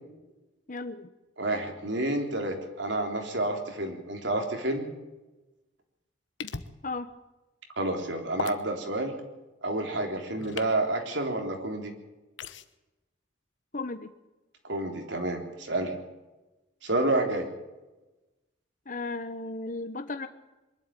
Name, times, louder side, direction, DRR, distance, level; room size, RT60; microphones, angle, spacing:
voice 1, 0.7-1.1 6.8-7.1 13.7-14.1 18.9-20.3, left 3 dB, 45° left, 9 dB, 1.0 m, -35 dB
voice 2, 1.4-4.9 7.8-9.2 9.6-11.9 14.6-15.9 16.8-17.5, right 2 dB, 75° right, 3 dB, 3.8 m, -29 dB
sound 1, 6.4-6.7 8.4-8.6 10.4-10.7 12.4-12.6, left 4 dB, 80° left, 1.1 m, -36 dB
23.5 x 12.0 x 9.1 m, 1.1 s
head